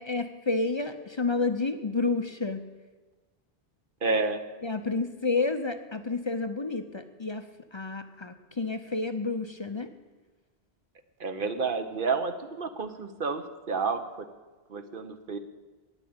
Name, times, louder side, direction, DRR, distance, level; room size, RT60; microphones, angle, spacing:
voice 1, 0.0-2.6 4.6-7.5 7.7-9.9, left 3 dB, 35° left, 9 dB, 0.6 m, -30 dB
voice 2, 4.0-4.4 11.2-14.3 14.7-15.4, right 4 dB, 55° right, 8 dB, 1.0 m, -30 dB
9.8 x 9.3 x 8.7 m, 1.2 s
omnidirectional pair, 1.1 m